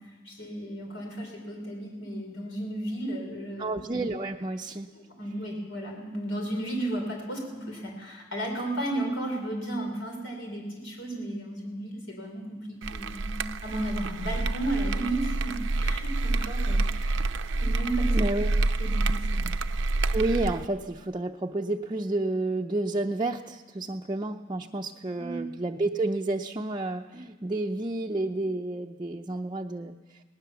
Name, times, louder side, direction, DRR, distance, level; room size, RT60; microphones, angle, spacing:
voice 1, 0.0-3.8 4.9-17.3 17.6-18.2 18.8-19.4 25.1-25.4, right 1 dB, 80° left, 1 dB, 4.3 m, -34 dB
voice 2, 3.6-4.9 18.1-18.5 20.1-30.2, right 2 dB, 25° right, 1 dB, 0.6 m, -30 dB
sound 1, 12.8-20.6, right 2 dB, 75° right, 0.6 m, -27 dB
20.5 x 18.5 x 7.0 m, 1.3 s
head